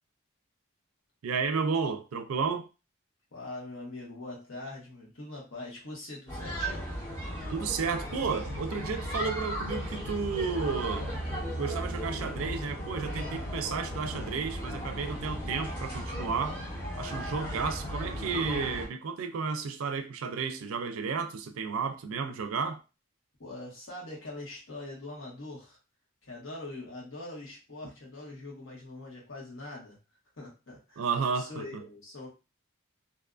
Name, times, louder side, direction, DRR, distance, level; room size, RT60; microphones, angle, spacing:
voice 1, 1.2-2.7 7.5-11.1 11.6-16.6 17.0-22.8 31.0-31.7, right 5 dB, 85° right, 0.4 m, -32 dB
voice 2, 3.3-6.9 23.4-25.8 26.2-30.0 30.4-31.0 31.3-32.3, left 2 dB, 75° left, 1.1 m, -43 dB
sound 1, 6.3-18.9, equal, 20° left, 1.1 m, -36 dB
2.6 x 2.3 x 2.4 m
head